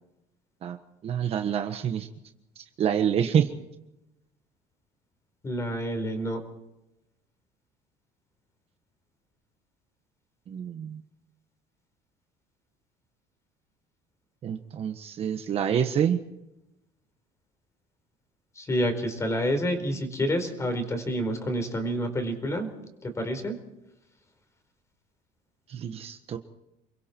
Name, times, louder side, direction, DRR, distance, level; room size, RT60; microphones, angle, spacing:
voice 1, 1.0-2.1 2.6-3.5 10.5-11.0 14.4-16.2 25.7-26.4, right 8 dB, 35° right, 7 dB, 1.4 m, -27 dB
voice 2, 5.4-6.4 18.5-22.7 23.0-23.6, equal, 20° left, 6 dB, 4.6 m, -28 dB
29.5 x 22.5 x 4.6 m, 0.91 s
cardioid pair, 155°, 16 cm